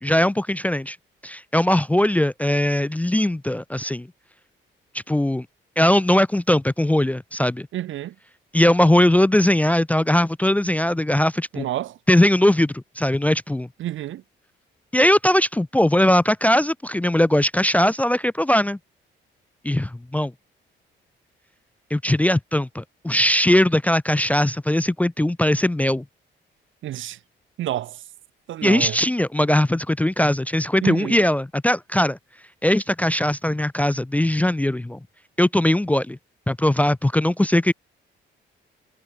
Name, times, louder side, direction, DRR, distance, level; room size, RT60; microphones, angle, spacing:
voice 1, 0.0-1.0 1.2-4.1 5.1-5.5 5.8-7.7 8.5-11.7 12.1-13.7 14.9-18.8 19.6-20.3 21.9-26.0 28.6-32.2 32.6-35.0 35.4-36.2 36.5-37.7, left 1 dB, 5° left, 0.5 m, -20 dB
voice 2, 7.7-8.1 11.5-12.0 13.8-14.2 26.8-27.2 27.6-28.0 28.5-29.0 30.8-31.2, right 13 dB, 75° right, 1.6 m, -29 dB
cardioid pair, 90°, 20 cm